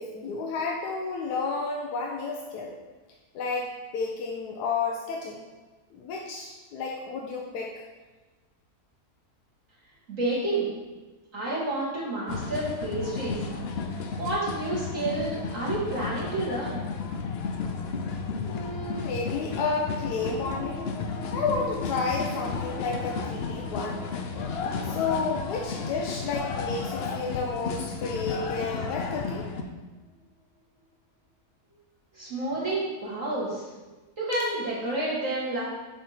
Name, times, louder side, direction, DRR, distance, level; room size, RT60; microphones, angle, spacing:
voice 1, 0.0-2.8 3.3-5.4 5.9-7.8 18.4-20.8 21.3-24.1 24.8-29.5, left 4 dB, 85° left, 0 dB, 1.2 m, -31 dB
voice 2, 10.1-10.7 11.3-13.4 14.2-16.8 32.1-33.7 34.2-35.6, right 2 dB, 55° right, -7 dB, 1.9 m, -29 dB
sound 1, 12.3-29.6, left 5 dB, 65° left, 0.6 m, -33 dB
sound 2, 19.4-30.6, left 1 dB, 75° right, 1.9 m, -46 dB
7.1 x 4.3 x 4.1 m, 1.2 s
omnidirectional pair, 1.7 m